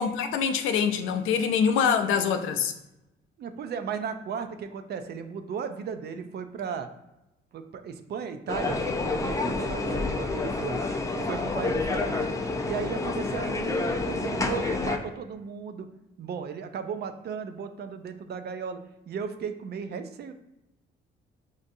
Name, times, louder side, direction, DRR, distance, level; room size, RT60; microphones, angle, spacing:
voice 1, 0.0-2.7, left 7 dB, 85° left, 7 dB, 0.4 m, -24 dB
voice 2, 3.4-6.9 7.5-10.8 11.1-12.2 12.6-15.9 16.2-18.8 19.1-20.3, right 6 dB, 55° right, 8 dB, 0.4 m, -35 dB
sound 1, 8.5-15.0, left 3 dB, 15° left, 0.4 m, -28 dB
5.3 x 2.5 x 2.6 m, 0.93 s
cardioid pair, 90°, 20 cm